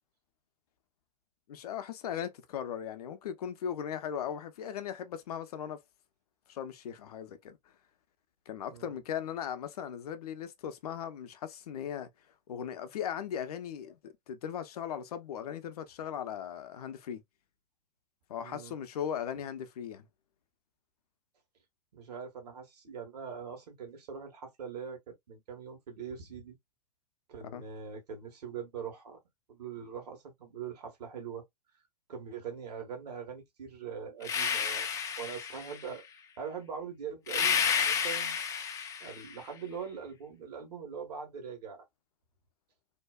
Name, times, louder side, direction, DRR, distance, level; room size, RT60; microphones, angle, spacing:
voice 1, 1.5-5.8 6.5-7.6 8.5-12.1 12.5-17.2 18.3-20.1 27.5-27.6, left 9 dB, 65° left, 0.6 m, -38 dB
voice 2, 18.4-18.7 21.9-26.6 27.3-29.2 29.5-31.4 32.1-34.9 35.2-36.0 36.4-38.4 39.0-41.8, right 6 dB, 65° right, 1.2 m, -42 dB
sound 1, 34.2-35.9 37.3-39.3, left 7 dB, 15° left, 0.4 m, -31 dB
2.7 x 2.2 x 2.2 m
figure-of-eight pair, 105°, 21 cm